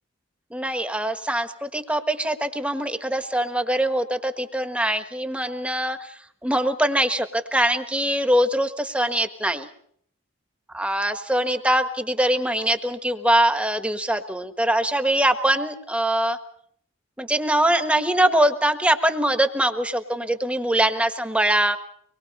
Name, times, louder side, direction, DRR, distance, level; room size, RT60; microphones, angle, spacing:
voice 1, 0.5-9.7 10.7-16.4 17.2-21.8, right 1 dB, 5° right, 8 dB, 1.4 m, -23 dB
24.5 x 21.5 x 5.4 m, 0.64 s
head